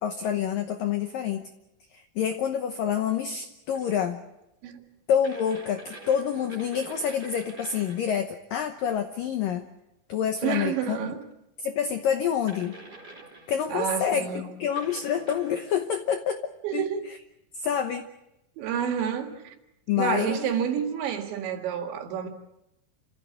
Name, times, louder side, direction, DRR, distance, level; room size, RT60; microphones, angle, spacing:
voice 1, 0.0-1.5 1.9-4.2 5.1-9.7 10.1-11.1 11.6-12.8 13.5-16.4 16.7-17.2 17.5-18.1 19.9-20.5, left 8 dB, 90° left, 1.9 m, -27 dB
sound 1, 3.7-4.1 5.2-8.2 11.2-11.3 12.5-13.6 14.8-15.8, right 2 dB, 20° right, 4.2 m, -46 dB
voice 2, 10.4-11.2 13.7-14.5 16.6-17.0 18.6-19.6 20.0-22.3, right 8 dB, 70° right, 4.2 m, -29 dB
29.5 x 15.5 x 8.5 m
omnidirectional pair, 5.5 m